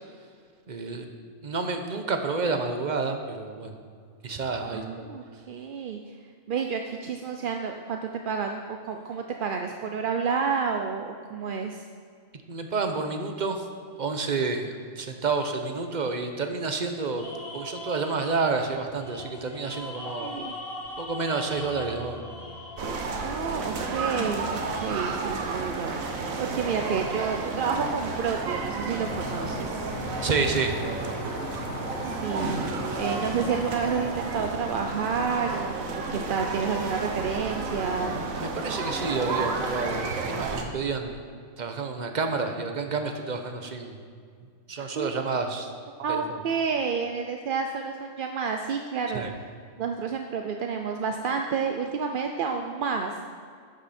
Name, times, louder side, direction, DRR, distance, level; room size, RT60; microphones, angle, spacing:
voice 1, 0.7-1.1 1.4-3.8 4.2-5.1 12.5-13.7 14.0-14.7 15.0-20.3 21.0-22.2 30.2-31.1 38.4-41.2 41.6-44.0 44.7-45.7 46.1-46.2 49.1-49.3, right 4 dB, 40° right, 5 dB, 0.9 m, -29 dB
voice 2, 4.7-6.0 6.5-11.8 20.2-20.5 23.2-29.9 32.0-38.2 44.9-45.2 46.0-49.3 49.8-53.2, right 6 dB, 55° right, 4 dB, 0.6 m, -30 dB
sound 1, 17.2-24.3, left 2 dB, 45° left, 1.6 m, -41 dB
sound 2, 22.8-40.6, right 3 dB, 85° right, 1.4 m, -32 dB
sound 3, 29.0-34.5, left 5 dB, 85° left, 1.3 m, -40 dB
12.0 x 8.2 x 4.3 m, 2.1 s
omnidirectional pair, 1.4 m